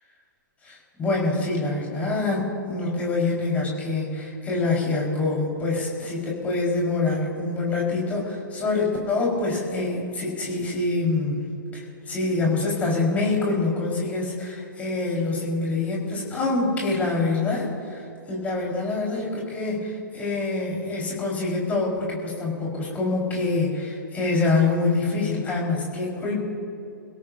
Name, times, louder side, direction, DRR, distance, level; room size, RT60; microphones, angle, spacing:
voice 1, 0.6-11.5 11.7-26.4, left 3 dB, 15° left, -3 dB, 4.4 m, -25 dB
28.0 x 16.5 x 2.7 m, 2.7 s
figure-of-eight pair, 125°, 11 cm